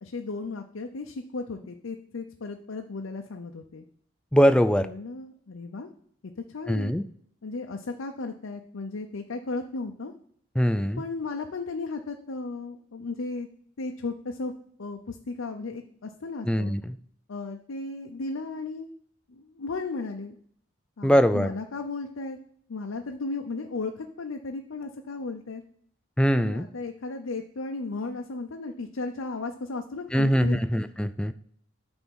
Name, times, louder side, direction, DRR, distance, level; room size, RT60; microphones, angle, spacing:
voice 1, 0.0-3.8 4.6-5.9 6.5-6.9 7.4-10.1 10.9-13.5 13.8-14.5 14.8-16.7 17.3-18.9 19.3-20.4 21.0-22.4 22.7-25.6 26.3-30.6, left 3 dB, 90° left, 4 dB, 0.6 m, -35 dB
voice 2, 4.3-4.9 6.7-7.0 10.6-11.0 16.5-17.0 21.0-21.5 26.2-26.6 30.1-31.3, equal, 5° left, 11 dB, 0.3 m, -22 dB
9.1 x 3.5 x 6.2 m, 0.64 s
head